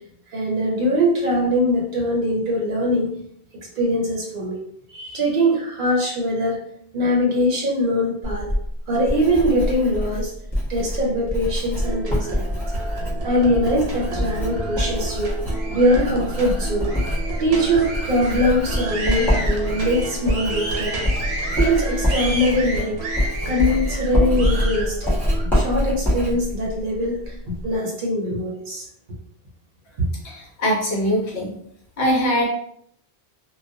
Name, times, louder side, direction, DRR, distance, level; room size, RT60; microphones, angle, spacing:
voice 1, 0.3-3.1 3.8-4.6 4.9-6.6 6.9-8.5 8.9-10.3 10.7-12.6 13.2-15.4 15.7-16.9 17.4-21.0 21.5-23.0 23.4-25.2 25.5-28.8 30.0-30.1, equal, 55° right, -2 dB, 0.7 m, -22 dB
Writing, 8.2-27.8, equal, ahead, 0.8 m, -25 dB
sound 1, 11.8-25.4, right 2 dB, 85° right, 0.9 m, -31 dB
voice 2, 30.2-31.6 32.0-32.5, equal, 65° left, -3 dB, 1.0 m, -22 dB
2.3 x 2.1 x 2.6 m, 0.68 s
omnidirectional pair, 1.1 m